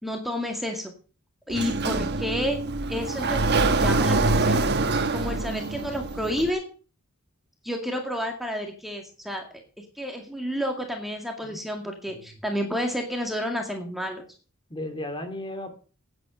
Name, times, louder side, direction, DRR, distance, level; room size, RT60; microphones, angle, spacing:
voice 1, 0.0-0.9 1.5-2.6 2.9-4.8 5.1-6.6 7.6-14.2, equal, ahead, 2 dB, 2.1 m, -30 dB
Sliding door, 1.5-6.5, right 3 dB, 55° right, 1.2 m, -25 dB
voice 2, 14.7-15.7, left 1 dB, 25° left, 7 dB, 2.6 m, -35 dB
11.0 x 9.7 x 7.8 m, 0.39 s
head